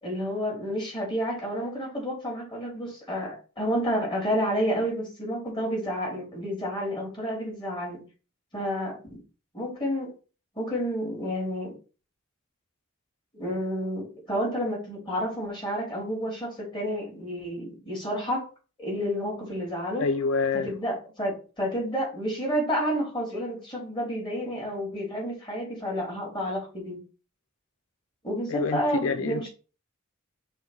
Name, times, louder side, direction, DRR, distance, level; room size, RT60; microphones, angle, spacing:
voice 1, 0.0-8.0 8.5-9.2 9.5-10.1 10.5-11.7 13.3-18.5 18.8-20.1 20.6-27.0 28.2-29.5, equal, 20° left, 3.3 m, -30 dB
voice 2, 20.0-20.7 28.5-29.5, left 4 dB, 65° left, 0.4 m, -27 dB
5.6 x 3.7 x 5.9 m
head